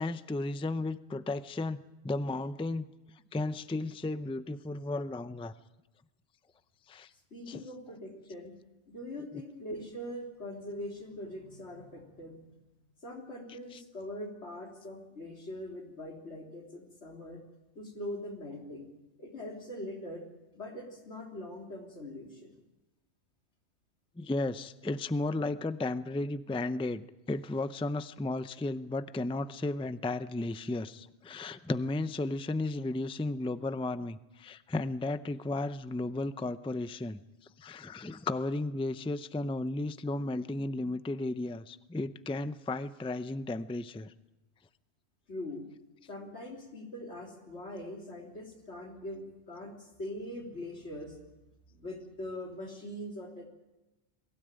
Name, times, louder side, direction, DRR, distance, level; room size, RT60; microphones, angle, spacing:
voice 1, 0.0-2.9 3.3-5.5 6.9-7.1 7.5-7.6 24.2-37.2 37.6-44.1, left 2 dB, 10° left, 13 dB, 0.4 m, -34 dB
voice 2, 7.3-8.5 8.9-12.4 13.0-17.4 17.8-18.9 19.2-20.3 20.5-22.5 45.3-45.7 46.1-51.4 51.7-53.5, left 1 dB, 90° left, 1 dB, 3.9 m, -42 dB
22.5 x 16.5 x 9.0 m, 1.0 s
omnidirectional pair, 1.1 m